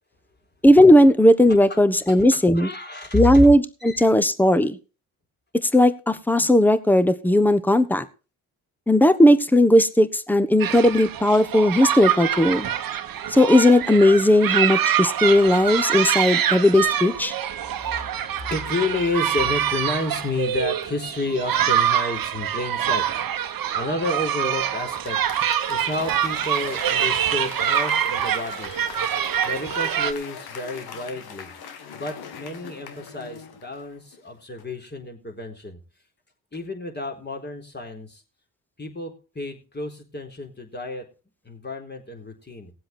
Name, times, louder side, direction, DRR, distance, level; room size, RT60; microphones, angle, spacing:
voice 1, 0.6-2.7 3.1-4.8 5.6-8.0 8.9-12.7 13.3-17.3, left 1 dB, 5° left, 13 dB, 1.3 m, -17 dB
voice 2, 2.1-3.5 3.8-4.1 17.7-25.2 25.7-28.7 29.4-31.5 31.9-35.8 36.5-38.2 38.8-41.1 41.4-42.7, left 2 dB, 25° left, 3 dB, 4.2 m, -30 dB
sound 1, 10.6-30.1, right 10 dB, 60° right, 1.3 m, -25 dB
Applause / Crowd, 24.8-34.2 34.6-34.7, left 6 dB, 75° left, 2.0 m, -41 dB
17.5 x 7.8 x 4.4 m, 0.34 s
supercardioid pair, 55°, 38 cm